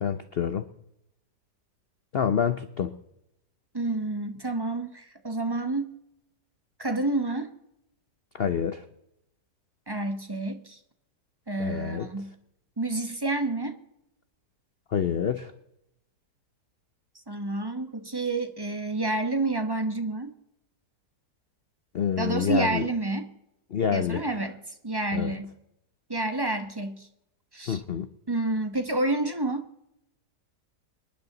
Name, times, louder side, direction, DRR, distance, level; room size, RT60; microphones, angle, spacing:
voice 1, 0.0-0.6 2.1-2.9 8.3-8.8 11.6-12.1 14.9-15.5 21.9-22.9 23.7-24.2 25.1-25.3 27.7-28.1, left 7 dB, 60° left, 0.6 m, -27 dB
voice 2, 3.7-5.9 6.8-7.5 9.9-10.8 11.5-12.3 12.8-13.8 17.3-20.3 22.2-23.3 23.9-24.6 24.8-25.5 26.1-27.1 27.5-27.8 28.3-29.6, right 2 dB, 20° right, 0.8 m, -29 dB
25.5 x 10.5 x 4.0 m
omnidirectional pair, 1.8 m